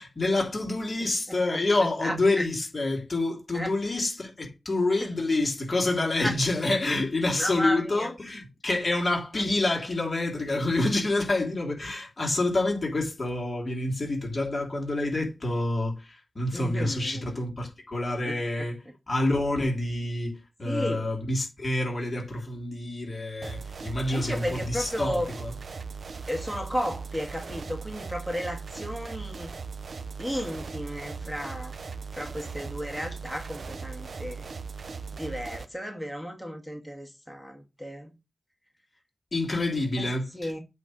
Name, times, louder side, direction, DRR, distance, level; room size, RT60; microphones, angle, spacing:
voice 1, 0.0-18.8 19.1-25.5 39.3-40.6, left 2 dB, 40° left, 3.2 m, -27 dB
voice 2, 1.0-1.6 2.0-2.4 3.5-3.7 5.0-5.1 6.0-6.3 7.4-8.1 9.3-9.5 10.5-10.6 16.5-17.3 18.2-18.7 20.7-21.1 24.1-25.3 26.3-29.6 30.2-31.7 32.1-34.5 35.1-38.1 40.0-40.6, equal, ahead, 1.8 m, -34 dB
sound 1, 23.4-35.7, right 5 dB, 65° right, 0.6 m, -39 dB
8.2 x 3.3 x 6.3 m
wide cardioid pair, 80°, 0 cm